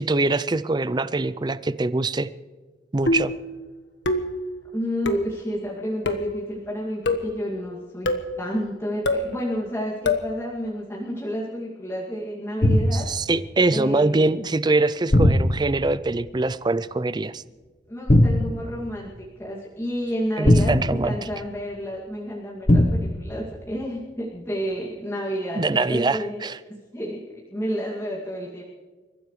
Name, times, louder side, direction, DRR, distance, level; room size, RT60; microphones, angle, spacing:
voice 1, 0.0-2.3 2.9-3.3 12.9-17.4 20.4-21.2 25.6-26.6, right 2 dB, 25° right, 15 dB, 0.5 m, -23 dB
sound 1, 3.1-3.5 4.0-4.4 5.0-5.4 6.0-6.4 7.1-7.4 8.0-8.3 9.0-9.3 10.0-10.3, left 2 dB, 80° left, 1.4 m, -24 dB
voice 2, 4.7-8.1 8.4-13.1 13.7-14.3 17.9-28.6, equal, 15° left, -6 dB, 2.4 m, -30 dB
sound 2, 12.6-13.1 15.1-15.9 18.1-18.6 20.4-21.3 22.7-23.2, left 1 dB, 45° left, 1.1 m, -18 dB
29.5 x 15.0 x 3.2 m, 1.4 s
head